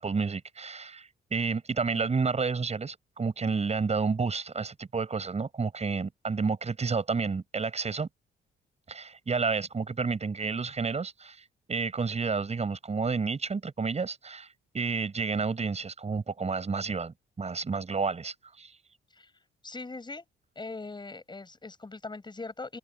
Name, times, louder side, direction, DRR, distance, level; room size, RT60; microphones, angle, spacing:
voice 1, 0.0-8.1 8.9-14.5 14.7-18.7, right 4 dB, 35° right, 6.4 m, -30 dB
voice 2, 19.6-20.2 20.5-22.8, left 3 dB, 20° left, 7.9 m, -40 dB
cardioid pair, 90°, 20 cm